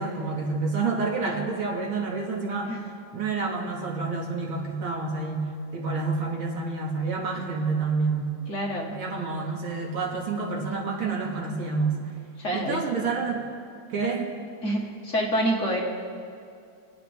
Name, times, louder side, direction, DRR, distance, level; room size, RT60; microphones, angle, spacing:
voice 1, 0.0-2.7 3.1-8.3 8.9-12.0 12.5-13.5 13.9-14.3, right 4 dB, 90° right, -1 dB, 2.7 m, -28 dB
voice 2, 8.5-9.0 12.4-12.8 14.6-15.8, equal, 40° left, -2 dB, 1.8 m, -27 dB
26.5 x 9.2 x 3.5 m, 2.4 s
omnidirectional pair, 2.2 m